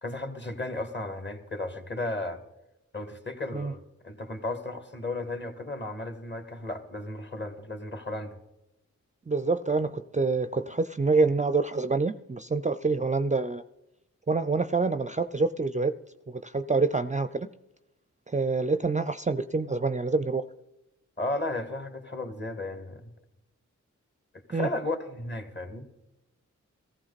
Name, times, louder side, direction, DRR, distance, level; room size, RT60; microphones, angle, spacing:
voice 1, 0.0-2.4 2.9-8.4 21.2-23.1 24.5-25.9, left 2 dB, 35° left, 7 dB, 2.0 m, -34 dB
voice 2, 9.3-13.6 14.3-15.9 16.3-17.5 18.3-20.4 24.5-24.7, right 3 dB, 25° right, 13 dB, 0.5 m, -26 dB
15.0 x 14.5 x 4.1 m, 0.94 s
cardioid pair, 50°, 31 cm